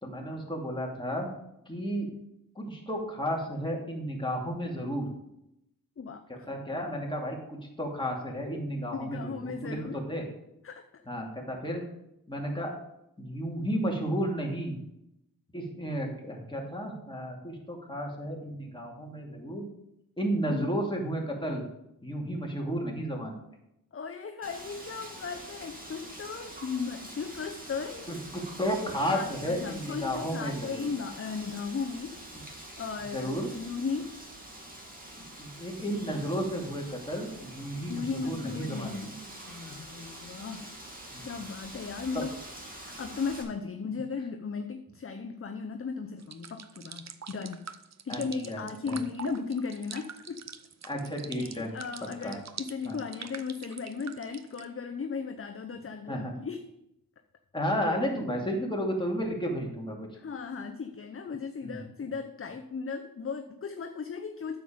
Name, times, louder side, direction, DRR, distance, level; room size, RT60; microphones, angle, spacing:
voice 1, 0.0-1.3 1.7-2.2 2.6-5.1 6.5-10.2 11.1-11.8 12.3-12.8 13.2-14.8 15.5-19.6 20.2-21.6 22.0-23.4 28.1-30.9 33.1-33.5 35.4-39.1 41.1-41.3 42.1-42.2 48.1-49.0 50.8-51.7 52.2-52.3 52.8-53.0 56.1-56.3 57.5-60.0 61.6-61.8, equal, 15° left, -1 dB, 2.5 m, -33 dB
voice 2, 8.9-10.0 10.6-11.0 20.5-20.7 23.9-28.1 29.1-32.2 32.8-34.2 37.9-39.1 39.5-40.7 41.2-42.3 42.7-47.6 48.0-50.4 51.4-56.7 60.1-64.6, left 5 dB, 35° left, 6 dB, 0.7 m, -36 dB
Wind, 24.4-43.4, right 1 dB, 25° right, 2.3 m, -46 dB
sound 1, 46.2-54.6, right 7 dB, 50° right, 0.6 m, -44 dB
9.1 x 7.3 x 5.1 m, 0.83 s
wide cardioid pair, 90°, 36 cm